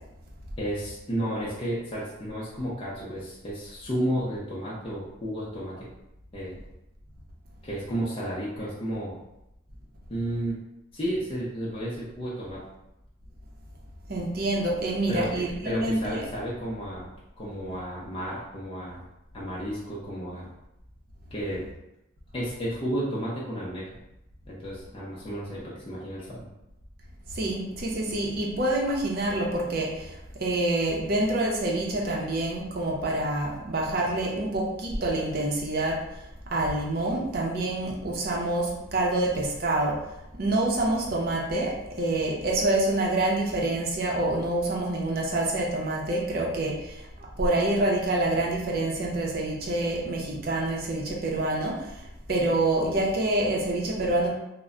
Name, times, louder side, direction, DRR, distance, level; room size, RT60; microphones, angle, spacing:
voice 1, 0.6-5.9 6.3-6.6 7.6-9.2 10.1-10.6 10.9-12.7 15.1-19.0 19.3-20.5 21.3-21.7 22.3-23.9 24.5-26.5, equal, 25° left, -7 dB, 0.5 m, -32 dB
voice 2, 14.1-16.2 27.3-36.0 36.5-40.0 40.4-47.1 47.4-52.0 52.3-54.3, right 2 dB, 50° right, -2 dB, 0.6 m, -27 dB
2.2 x 2.1 x 3.6 m, 0.88 s
head